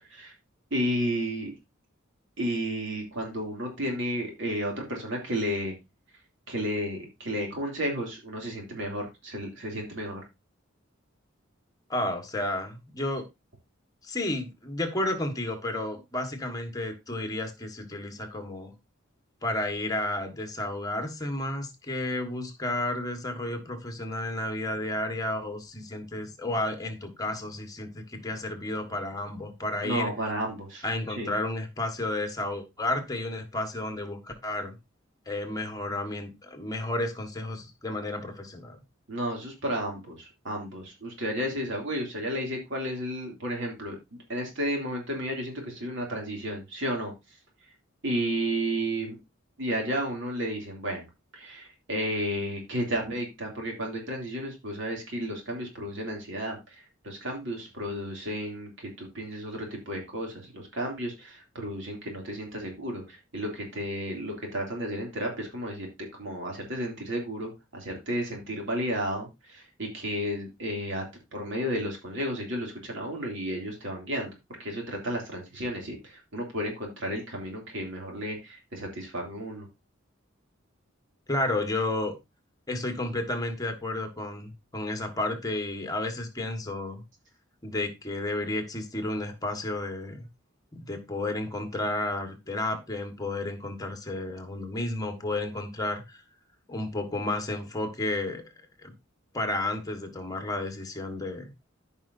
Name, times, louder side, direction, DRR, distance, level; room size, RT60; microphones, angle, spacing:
voice 1, 0.7-1.5 2.4-5.7 6.5-10.2 29.8-30.8 31.1-31.3 39.1-47.1 48.0-49.2 49.6-51.0 51.3-71.0 71.3-74.3 74.6-79.7, equal, 65° right, 1 dB, 2.7 m, -32 dB
voice 2, 11.9-13.3 14.0-18.7 19.4-30.1 30.8-34.7 35.3-38.8 81.3-82.1 82.7-87.0 87.6-90.3 90.7-96.2 96.7-98.4 98.8-98.9 99.3-101.4, left 2 dB, 20° left, 6 dB, 1.6 m, -32 dB
14.0 x 5.4 x 2.7 m, 0.23 s
head